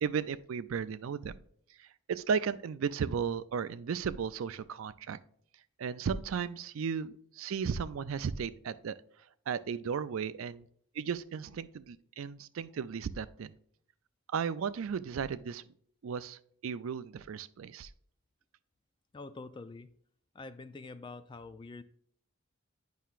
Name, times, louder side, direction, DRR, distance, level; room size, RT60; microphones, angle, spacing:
voice 1, 0.0-1.4 1.7-5.2 5.8-9.0 9.5-10.7 10.9-13.5 14.3-15.6 16.0-17.9, right 6 dB, 75° right, 15 dB, 0.4 m, -35 dB
voice 2, 19.1-19.9 20.3-21.8, left 3 dB, 20° left, 11 dB, 0.3 m, -46 dB
9.3 x 5.6 x 2.4 m, 0.63 s
head